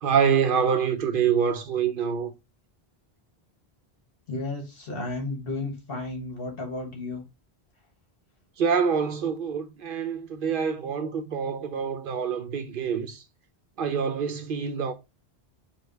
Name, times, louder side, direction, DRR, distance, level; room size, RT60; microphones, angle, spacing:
voice 1, 0.0-2.3 8.6-13.2 13.8-14.9, right 7 dB, 60° right, 0.7 m, -26 dB
voice 2, 4.3-7.2, left 2 dB, 60° left, 1.5 m, -33 dB
5.1 x 2.3 x 4.4 m
omnidirectional pair, 1.1 m